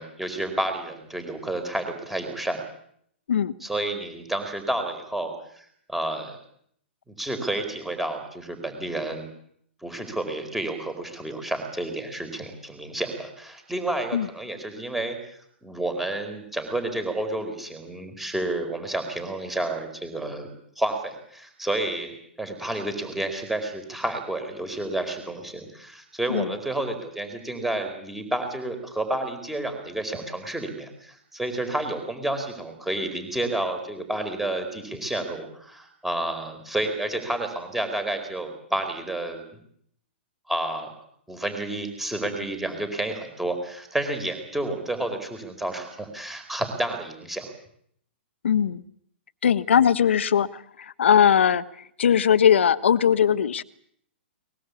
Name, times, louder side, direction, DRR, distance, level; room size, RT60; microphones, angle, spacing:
voice 1, 0.0-2.6 3.6-6.4 7.1-9.3 9.8-15.2 15.6-20.5 20.8-39.4 40.5-40.9 41.3-47.5, right 1 dB, 5° right, 7 dB, 4.5 m, -30 dB
voice 2, 48.4-48.8 49.4-51.6 52.0-53.6, left 8 dB, 75° left, 13 dB, 1.3 m, -20 dB
23.0 x 21.0 x 8.5 m, 0.68 s
hypercardioid pair, 135°, 6 cm